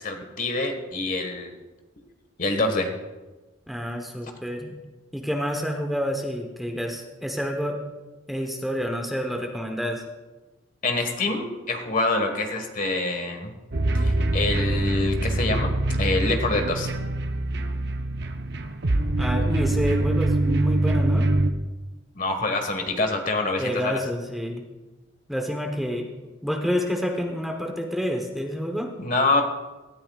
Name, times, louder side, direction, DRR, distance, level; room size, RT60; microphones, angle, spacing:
voice 1, 0.0-1.5 2.4-2.9 10.8-13.5 13.9-15.7 16.0-16.9 22.1-24.0 29.0-29.4, left 2 dB, 40° left, 5 dB, 1.6 m, -26 dB
voice 2, 3.7-4.7 5.1-7.8 8.3-10.0 19.2-21.3 23.6-24.6 25.3-26.1 26.4-28.9, equal, ahead, 2 dB, 1.0 m, -28 dB
sound 1, 13.7-21.5, right 2 dB, 55° right, 0.7 m, -24 dB
18.0 x 13.0 x 2.4 m, 1.1 s
head